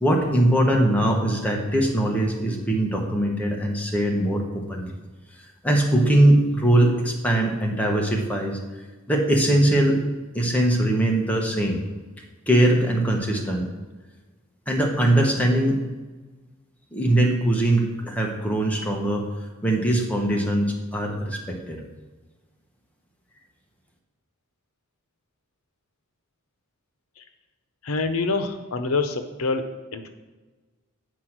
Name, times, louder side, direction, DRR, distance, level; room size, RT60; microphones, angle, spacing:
voice 1, 0.0-4.9 5.6-8.6 9.1-10.0 10.3-11.8 12.5-13.6 14.7-15.8 16.9-19.2 19.6-21.8, right 1 dB, 5° left, 0 dB, 1.2 m, -21 dB
voice 2, 27.8-29.7 29.9-30.1, left 3 dB, 85° left, 8 dB, 0.8 m, -26 dB
8.4 x 4.6 x 6.0 m, 1.3 s
head